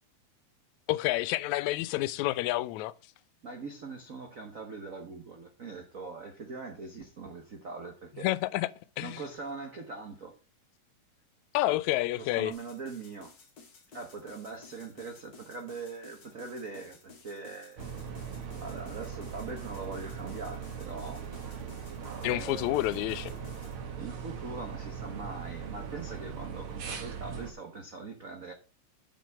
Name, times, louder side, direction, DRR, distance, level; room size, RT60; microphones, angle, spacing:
voice 1, 0.9-2.9 8.2-8.7 9.0-9.2 11.5-12.5 22.2-23.3, left 17 dB, 80° left, 1.8 m, -29 dB
voice 2, 3.4-8.3 9.0-10.4 12.2-13.3 13.9-18.1 18.6-21.3 22.3-23.2 24.0-28.5, right 4 dB, 90° right, 0.7 m, -42 dB
sound 1, 12.5-23.8, left 4 dB, 45° left, 2.0 m, -55 dB
sound 2, 17.8-27.5, right 7 dB, 55° right, 1.9 m, -40 dB
9.2 x 5.9 x 4.7 m
omnidirectional pair, 3.4 m